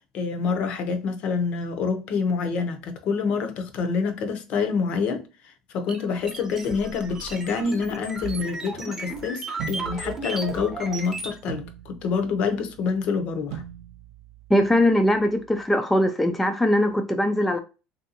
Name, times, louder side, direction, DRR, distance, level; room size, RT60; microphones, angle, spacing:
voice 1, 0.1-13.6, left 5 dB, 55° left, 0.7 m, -27 dB
sound 1, 5.9-11.4, right 3 dB, 15° right, 0.7 m, -35 dB
sound 2, 9.6-15.6, right 9 dB, 85° right, 0.5 m, -42 dB
voice 2, 14.5-17.6, left 1 dB, 5° left, 0.3 m, -21 dB
3.2 x 2.6 x 2.8 m
cardioid pair, 130°, 2 cm